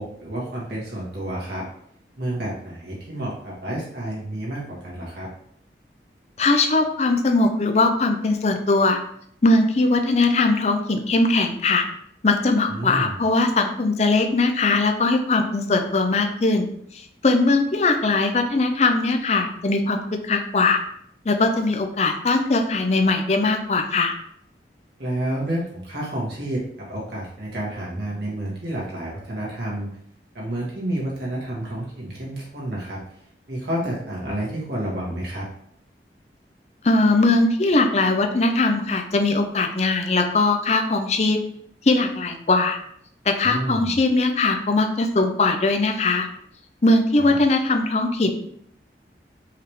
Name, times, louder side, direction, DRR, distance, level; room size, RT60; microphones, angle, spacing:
voice 1, 0.0-1.6 2.2-5.3 12.7-13.2 25.0-29.9 30.3-33.0 33.5-35.5 43.4-43.9 47.2-47.4, right 1 dB, 70° right, -5 dB, 1.8 m, -30 dB
voice 2, 6.4-9.0 9.4-11.8 12.2-16.7 17.2-20.8 21.3-24.1 36.8-41.4 41.8-42.8 43.3-46.3 46.8-48.3, left 3 dB, 40° left, 6 dB, 0.5 m, -20 dB
4.8 x 3.4 x 3.1 m, 0.69 s
head